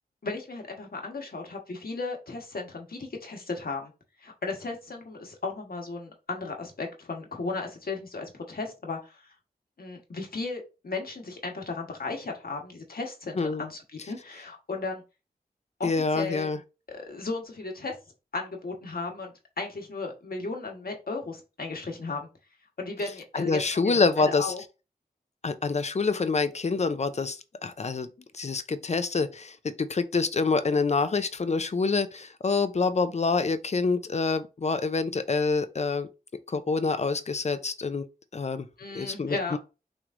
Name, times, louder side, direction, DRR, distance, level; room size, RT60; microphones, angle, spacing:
voice 1, 0.2-3.9 4.2-9.2 9.8-15.0 15.8-16.5 16.9-17.9 18.3-22.3 22.8-24.6 38.8-39.6, left 3 dB, 70° left, 1.3 m, -35 dB
voice 2, 13.4-13.7 15.8-16.6 23.3-24.5 25.4-28.1 28.3-36.1 36.5-38.1 38.3-38.7 38.9-39.6, left 4 dB, 45° left, 0.5 m, -26 dB
6.0 x 3.2 x 2.5 m
wide cardioid pair, 75°, 16 cm